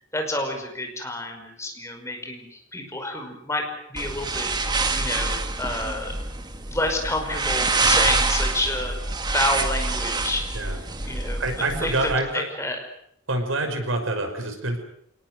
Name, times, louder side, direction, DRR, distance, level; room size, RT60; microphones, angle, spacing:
voice 1, 0.1-4.5 4.9-6.1 6.7-9.0 9.3-10.7 11.1-12.8, left 1 dB, 15° left, 3 dB, 5.4 m, -29 dB
sound 1, 4.0-12.2, right 3 dB, 20° right, 1.8 m, -26 dB
voice 2, 10.5-12.5 13.3-14.8, right 2 dB, 85° right, 5 dB, 6.0 m, -27 dB
28.5 x 19.0 x 8.0 m, 0.70 s
head